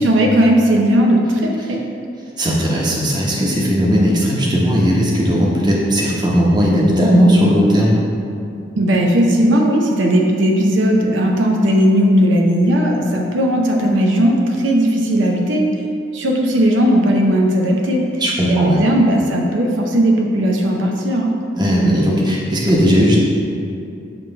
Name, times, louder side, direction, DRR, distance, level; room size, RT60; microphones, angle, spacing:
voice 1, 0.0-1.8 8.8-15.7 16.1-18.2 18.5-21.3, equal, 80° right, 1 dB, 0.7 m, -16 dB
voice 2, 2.4-8.0 18.2-18.8 21.5-23.2, equal, 20° right, -5 dB, 1.0 m, -16 dB
7.4 x 3.2 x 5.7 m, 2.6 s
head